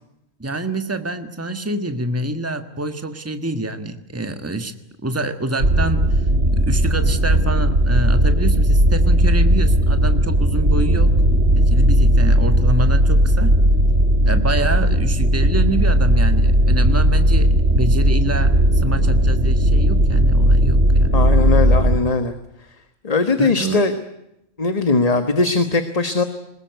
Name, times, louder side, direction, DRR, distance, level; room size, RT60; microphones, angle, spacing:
voice 1, 0.4-4.7 5.0-6.2 6.5-11.1 11.6-13.6 14.2-21.3 23.4-23.8, right 2 dB, 10° right, 8 dB, 1.5 m, -26 dB
sound 1, 5.6-22.0, right 1 dB, 55° right, 3.2 m, -16 dB
voice 2, 21.1-22.3 23.0-23.9 24.6-26.2, left 3 dB, 30° left, 9 dB, 1.4 m, -19 dB
22.5 x 20.5 x 9.4 m, 0.84 s
omnidirectional pair, 1.4 m